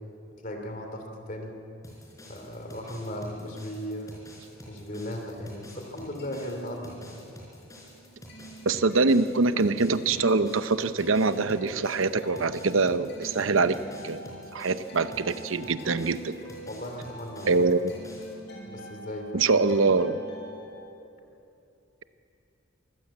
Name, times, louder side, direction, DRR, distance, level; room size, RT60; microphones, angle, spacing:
voice 1, 0.4-1.5 2.3-4.2 4.7-7.2 16.7-17.8 18.6-19.7, equal, 40° left, 4 dB, 2.9 m, -37 dB
sound 1, 1.8-18.3, equal, 15° left, 4.6 m, -49 dB
sound 2, 6.2-7.4 7.7-20.6, right 1 dB, 60° left, 6.1 m, -46 dB
voice 2, 8.7-13.8 14.0-14.2 14.5-16.4 17.5-17.8 19.3-20.2, right 3 dB, 80° right, 12 dB, 0.8 m, -24 dB
24.0 x 15.0 x 8.7 m, 2.8 s
head